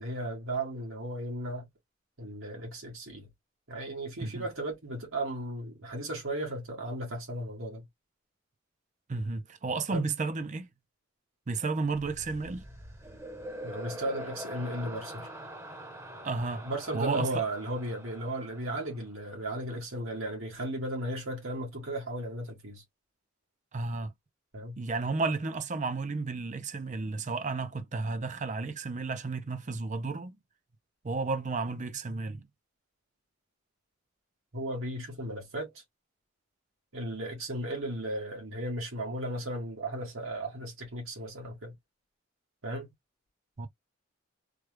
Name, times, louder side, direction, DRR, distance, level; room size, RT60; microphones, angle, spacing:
voice 1, 0.0-1.7 2.2-3.3 3.7-7.8 9.9-10.1 13.6-15.3 16.6-22.8 24.5-24.8 34.5-35.8 36.9-41.7 42.6-42.9, right 1 dB, 80° right, 1.6 m, -35 dB
voice 2, 9.1-10.7 11.5-12.6 16.2-16.6 16.9-17.4 23.7-24.1 24.8-30.4 31.0-32.5 43.6-43.7, right 3 dB, 35° right, 0.5 m, -32 dB
sound 1, 12.0-19.3, equal, 15° right, 0.9 m, -44 dB
3.3 x 2.3 x 3.2 m
head